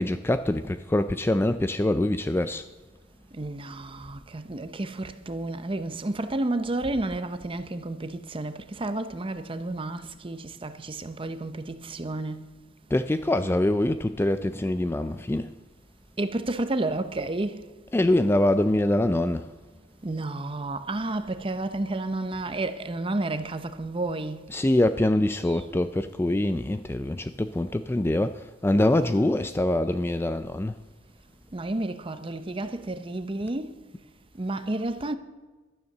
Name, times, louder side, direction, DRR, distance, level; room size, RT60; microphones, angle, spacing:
voice 1, 0.0-2.6 12.9-15.5 17.9-19.5 24.5-30.8, left 1 dB, 10° left, 0.3 m, -24 dB
voice 2, 3.3-12.4 16.2-17.6 20.0-24.4 25.5-25.6 31.5-33.8 34.4-35.1, right 2 dB, 25° right, 0.7 m, -31 dB
12.0 x 9.5 x 6.6 m
head